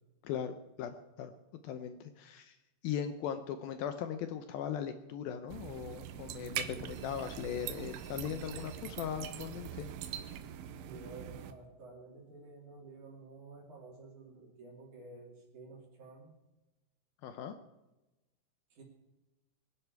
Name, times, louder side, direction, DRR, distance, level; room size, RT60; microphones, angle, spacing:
voice 1, 0.2-1.3 1.6-2.6 2.8-9.9 17.2-17.6, left 8 dB, 85° left, 9 dB, 2.1 m, -39 dB
sound 1, 5.5-11.5, right 10 dB, 80° right, 3.1 m, -42 dB
voice 2, 10.8-16.3 18.8-18.9, right 3 dB, 45° right, 0 dB, 4.0 m, -51 dB
23.5 x 11.0 x 4.6 m, 1.0 s
omnidirectional pair, 5.3 m